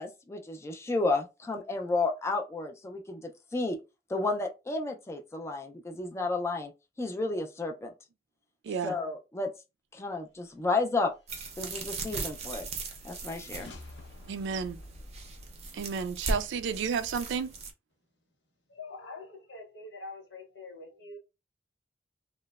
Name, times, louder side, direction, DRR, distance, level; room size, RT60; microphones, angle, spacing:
voice 1, 0.0-3.8 4.1-6.7 7.0-7.9 8.8-9.5 9.9-11.1 11.6-12.7 13.0-13.7, left 3 dB, 15° left, 0.3 m, -32 dB
sound 1, 11.3-17.7, right 3 dB, 40° right, 0.5 m, -38 dB
sound 2, 11.5-17.2, left 1 dB, 90° left, 0.6 m, -52 dB
voice 2, 14.3-14.8 15.7-17.5, right 6 dB, 85° right, 0.3 m, -32 dB
voice 3, 18.7-21.2, left 3 dB, 70° left, 1.0 m, -45 dB
2.9 x 2.0 x 2.2 m
head